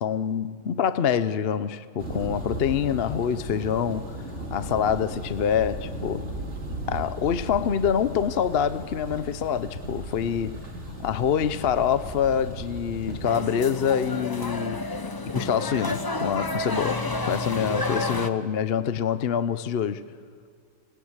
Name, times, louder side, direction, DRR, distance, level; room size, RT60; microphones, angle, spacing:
voice 1, 0.0-4.2 4.5-6.3 6.9-10.6 11.0-14.9 15.2-20.0, left 8 dB, 50° left, 0.8 m, -26 dB
Thunder, 2.0-13.3, right 1 dB, 45° right, 2.9 m, -36 dB
sound 1, 8.1-14.5, equal, 25° right, 3.7 m, -47 dB
sound 2, 13.2-18.3, left 2 dB, 20° left, 0.6 m, -30 dB
26.0 x 20.0 x 8.2 m
omnidirectional pair, 1.7 m